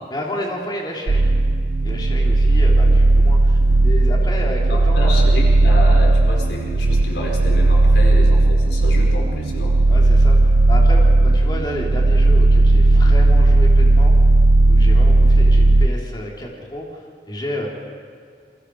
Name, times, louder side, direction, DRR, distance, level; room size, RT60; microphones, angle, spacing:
voice 1, 0.1-1.3 1.8-5.3 9.9-14.2 14.7-17.7, equal, 25° left, -2 dB, 3.7 m, -31 dB
sound 1, 1.1-15.9, right 2 dB, 75° right, 0.5 m, -14 dB
voice 2, 4.7-9.8, equal, 85° left, -1 dB, 5.0 m, -29 dB
29.0 x 23.0 x 4.9 m, 2.1 s
head